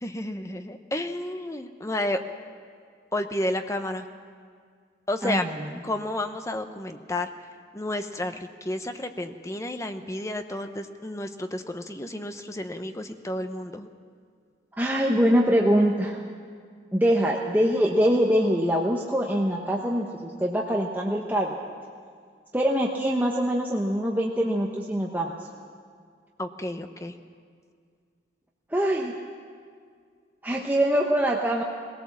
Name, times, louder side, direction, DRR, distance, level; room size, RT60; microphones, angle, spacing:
voice 1, 0.0-2.2 3.1-4.1 5.1-5.4 5.8-7.3 7.7-13.9 26.4-27.2, left 1 dB, 15° left, 7 dB, 0.8 m, -31 dB
voice 2, 14.8-16.2 16.9-21.5 22.5-25.3 28.7-29.1 30.4-31.6, equal, 10° right, -1 dB, 1.0 m, -23 dB
20.5 x 17.5 x 7.3 m, 2.1 s
head